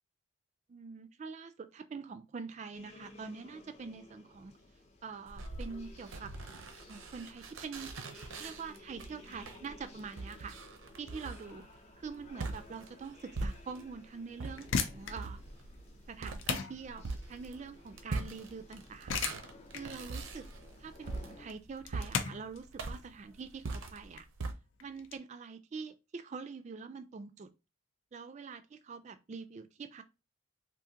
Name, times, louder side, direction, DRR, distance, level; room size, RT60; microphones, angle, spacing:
voice 1, 0.7-4.6 5.0-6.3 6.9-7.9 8.4-10.5 11.0-11.7 12.0-15.4 16.1-19.1 19.7-20.5 20.8-24.3 24.8-27.5 28.1-30.0, right 5 dB, 35° right, 0.3 m, -45 dB
sound 1, 2.7-21.5, left 2 dB, 30° left, 0.6 m, -57 dB
sound 2, 5.3-14.0 14.4-24.5, right 3 dB, 80° right, 0.6 m, -42 dB
sound 3, 14.6-25.2, left 6 dB, 75° left, 0.5 m, -39 dB
3.7 x 2.5 x 2.8 m
head